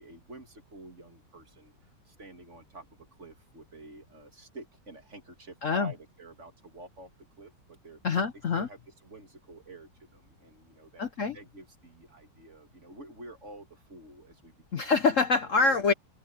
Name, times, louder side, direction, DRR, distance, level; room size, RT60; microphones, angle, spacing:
voice 1, 0.0-7.1 7.4-8.0 8.5-11.1 11.3-14.9 15.5-15.8, right 2 dB, 40° right, 2.8 m, -49 dB
voice 2, 8.0-8.7 11.0-11.4 14.7-15.9, left 4 dB, 50° left, 1.1 m, -25 dB
open air
omnidirectional pair, 2.0 m